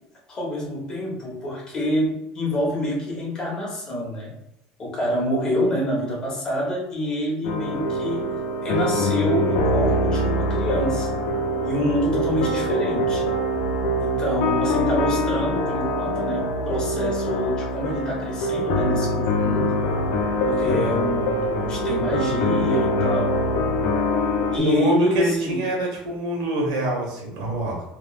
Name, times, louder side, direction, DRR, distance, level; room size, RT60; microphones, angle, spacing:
voice 1, 0.3-4.3 4.8-8.3 8.6-11.2 11.6-13.2 14.0-19.7 20.5-23.3 24.5-25.6, equal, 25° left, -3 dB, 1.2 m, -27 dB
sound 1, 7.4-24.6, equal, 75° left, 0.5 m, -24 dB
voice 2, 24.5-27.8, right 1 dB, 90° right, -1 dB, 1.2 m, -24 dB
3.4 x 3.0 x 2.4 m, 0.85 s
cardioid pair, 155°, 3 cm